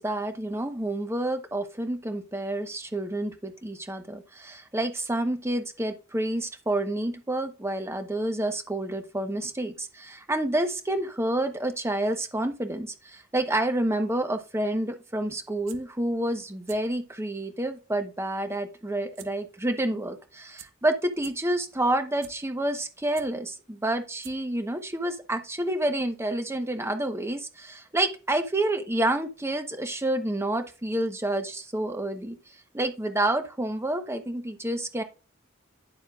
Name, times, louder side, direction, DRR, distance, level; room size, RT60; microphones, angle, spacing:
voice 1, 0.0-32.4 32.7-35.0, right 1 dB, 15° right, 7 dB, 1.0 m, -29 dB
sound 1, 15.4-15.8 16.5-16.8 17.2-17.3 19.2-19.3 19.6-19.7 20.3-20.4 20.6-20.7 21.1-21.3 21.9-22.3 22.8-23.3 23.9-24.0 24.2-24.6 24.9-25.0, right 10 dB, 75° right, 1.0 m, -46 dB
10.5 x 7.2 x 2.4 m, 0.32 s
head